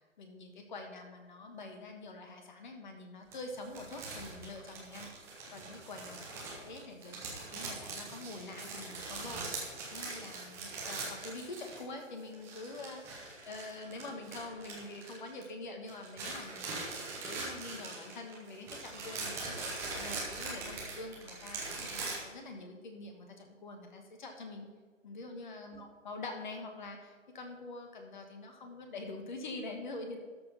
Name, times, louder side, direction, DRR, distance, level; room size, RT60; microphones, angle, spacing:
voice 1, 0.2-5.1 5.5-6.3 6.5-24.7 25.0-30.2, left 2 dB, 35° left, 4 dB, 1.5 m, -45 dB
sound 1, 3.3-12.0 12.3-15.6 15.9-22.2, right 3 dB, 5° right, 0.9 m, -42 dB
13.0 x 4.5 x 5.6 m, 1.5 s
figure-of-eight pair, 145°, 39 cm